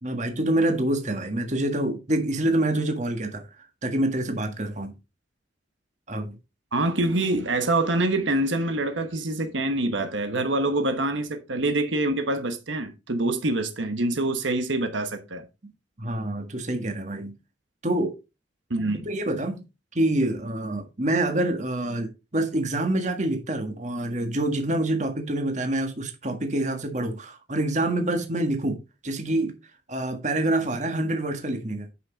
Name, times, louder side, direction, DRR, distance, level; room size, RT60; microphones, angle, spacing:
voice 1, 0.0-3.5 3.8-4.9 6.1-6.4 16.0-17.3 17.8-18.2 19.0-19.6 19.9-29.6 29.9-31.9, right 1 dB, 40° right, 1.6 m, -26 dB
voice 2, 6.7-15.4 18.7-19.1, right 2 dB, 80° right, 1.2 m, -25 dB
9.3 x 5.9 x 4.0 m
head